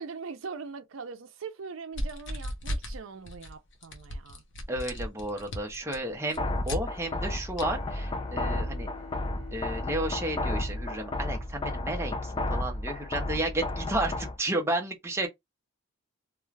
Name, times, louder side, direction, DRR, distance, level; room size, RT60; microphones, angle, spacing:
voice 1, 0.0-4.4, right 5 dB, 75° right, 0.5 m, -41 dB
sound 1, 1.9-3.0 3.3-3.5 3.8-6.8 7.6-7.7, equal, 65° left, 0.8 m, -35 dB
voice 2, 4.7-8.9 9.5-15.3, right 1 dB, 15° right, 0.7 m, -32 dB
sound 2, 6.4-14.4, left 1 dB, 25° left, 0.4 m, -32 dB
Bowed string instrument, 7.5-12.4, left 4 dB, 80° left, 1.0 m, -49 dB
2.4 x 2.3 x 3.1 m
head